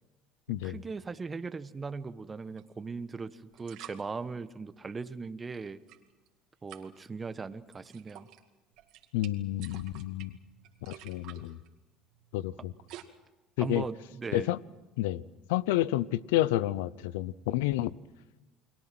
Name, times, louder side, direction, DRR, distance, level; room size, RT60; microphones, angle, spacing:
voice 1, 0.5-5.8 6.6-8.3 13.6-14.5, right 4 dB, 25° right, 11 dB, 1.2 m, -39 dB
sound 1, 2.6-2.7 3.5-4.0 5.6-6.3 6.7-7.0 7.7-8.4 8.7-13.0, right 13 dB, 70° right, 2.2 m, -51 dB
voice 2, 9.1-10.3 10.8-11.6 12.3-12.7 13.6-13.9 14.3-14.6 15.0-15.2 15.5-17.9, left 15 dB, 85° left, 20 dB, 0.7 m, -30 dB
30.0 x 21.5 x 6.1 m, 1.1 s
supercardioid pair, 90°, 0 cm